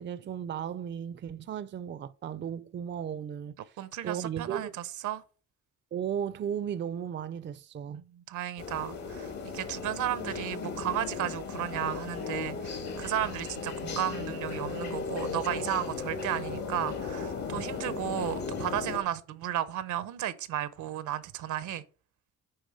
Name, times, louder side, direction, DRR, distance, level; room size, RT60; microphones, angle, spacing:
voice 1, 0.0-3.6 4.0-4.7 5.9-8.0, right 9 dB, 40° right, 0.5 m, -35 dB
voice 2, 3.8-5.2 7.9-21.8, right 11 dB, 80° right, 0.8 m, -34 dB
sound 1, 8.6-19.0, left 5 dB, 65° left, 2.0 m, -36 dB
8.9 x 3.4 x 5.0 m
cardioid pair, 90°, 30 cm